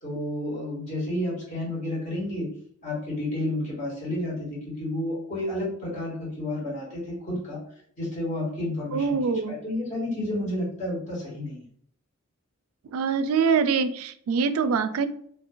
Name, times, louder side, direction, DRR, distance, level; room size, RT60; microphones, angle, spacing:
voice 1, 0.0-2.5 2.8-7.6 8.0-9.2 9.5-11.6, left 1 dB, 35° left, -6 dB, 1.4 m, -31 dB
voice 2, 8.9-9.6 12.9-15.1, right 5 dB, 80° right, 12 dB, 0.3 m, -24 dB
2.8 x 2.4 x 3.7 m, 0.64 s
head